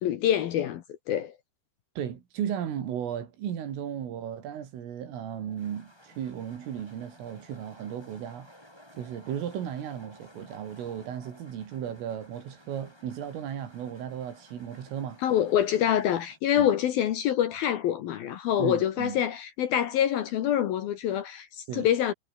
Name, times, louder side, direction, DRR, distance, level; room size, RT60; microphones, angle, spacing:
voice 1, 0.0-1.3 15.2-22.1, left 10 dB, 65° left, 2.5 m, -26 dB
voice 2, 2.0-8.5 9.0-15.2 16.6-16.7 18.6-19.2 21.7-21.9, right 9 dB, 90° right, 5.9 m, -35 dB
sound 1, 5.3-16.4, left 1 dB, 5° left, 6.8 m, -55 dB
omnidirectional pair, 5.6 m